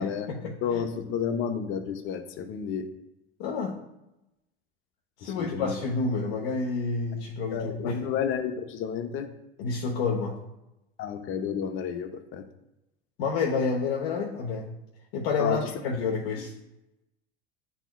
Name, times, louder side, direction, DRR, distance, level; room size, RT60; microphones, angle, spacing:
voice 1, 0.0-0.8 3.4-3.8 5.2-8.0 9.6-10.4 13.2-14.7 15.1-16.5, left 4 dB, 65° left, -1 dB, 1.0 m, -29 dB
voice 2, 0.6-2.9 5.2-5.7 7.5-9.3 11.0-12.4 15.4-15.6, left 7 dB, 40° left, 7 dB, 0.7 m, -31 dB
9.8 x 4.2 x 2.3 m, 0.90 s
hypercardioid pair, 80°, 30 cm